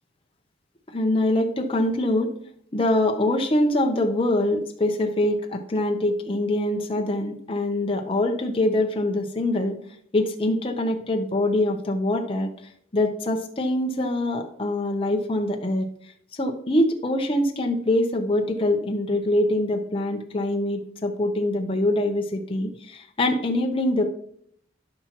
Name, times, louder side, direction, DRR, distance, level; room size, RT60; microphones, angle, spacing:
voice 1, 0.9-2.3 2.7-9.8 10.1-12.5 12.9-15.9 16.3-24.0, left 1 dB, 30° left, 3 dB, 0.7 m, -24 dB
13.5 x 5.8 x 2.9 m, 0.65 s
head